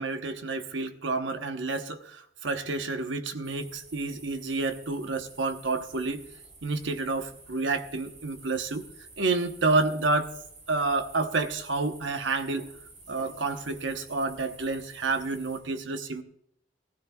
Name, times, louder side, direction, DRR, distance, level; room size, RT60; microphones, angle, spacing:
voice 1, 0.0-6.2 6.6-8.9 9.2-10.3 10.7-12.7 13.1-16.2, right 3 dB, 85° right, 1.0 m, -29 dB
sound 1, 3.4-15.6, right 3 dB, 40° right, 3.0 m, -51 dB
15.5 x 15.5 x 2.3 m
head